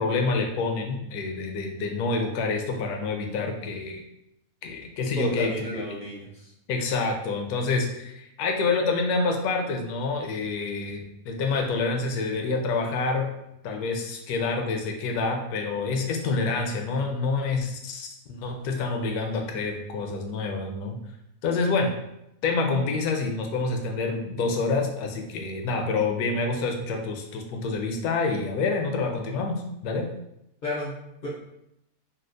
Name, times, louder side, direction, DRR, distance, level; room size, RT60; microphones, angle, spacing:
voice 1, 0.0-4.0 4.6-5.8 6.7-13.3 13.6-21.0 21.4-21.9 22.4-30.1, left 3 dB, 75° left, 2 dB, 1.1 m, -27 dB
voice 2, 5.1-6.5 30.6-30.9 31.2-31.3, left 1 dB, 50° left, -5 dB, 0.5 m, -32 dB
4.2 x 2.0 x 2.5 m, 0.82 s
omnidirectional pair, 1.6 m